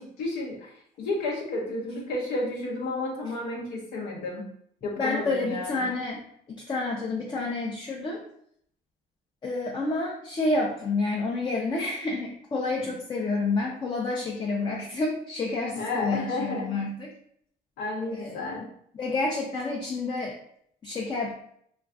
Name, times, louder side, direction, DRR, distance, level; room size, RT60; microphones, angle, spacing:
voice 1, 0.0-4.5 4.8-5.9 12.8-12.9 15.8-16.8 17.8-18.7, left 2 dB, 80° left, -2 dB, 0.7 m, -32 dB
voice 2, 5.0-6.2 6.5-8.2 9.4-17.1 18.1-18.5 18.9-20.4 20.8-21.4, left 3 dB, 25° left, -1 dB, 0.5 m, -29 dB
2.3 x 2.3 x 3.5 m, 0.67 s
cardioid pair, 110°, 17 cm